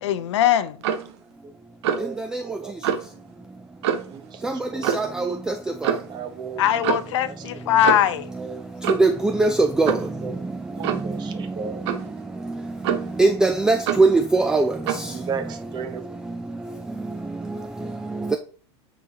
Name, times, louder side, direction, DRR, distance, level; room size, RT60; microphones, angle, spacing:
voice 1, 0.0-0.8 6.6-8.2, left 11 dB, 85° left, 0.6 m, -21 dB
Clock, 0.8-1.1 1.8-2.1 2.8-3.1 3.8-4.2 4.8-5.1 5.8-6.1 6.8-7.2 7.8-8.2 8.8-9.2 9.9-10.1 10.8-11.1 11.9-12.1 12.8-13.2 13.9-14.1 14.9-15.1, right 8 dB, 65° right, 0.9 m, -26 dB
voice 2, 1.8-2.7 4.1-5.2 6.1-6.6 7.4-7.5 8.3-8.6 10.2-10.3 10.8-11.9 14.7-16.1, right 6 dB, 30° right, 1.0 m, -35 dB
voice 3, 13.2-14.6, right 3 dB, 5° right, 0.3 m, -18 dB
9.4 x 3.9 x 2.9 m
supercardioid pair, 145°, 15 cm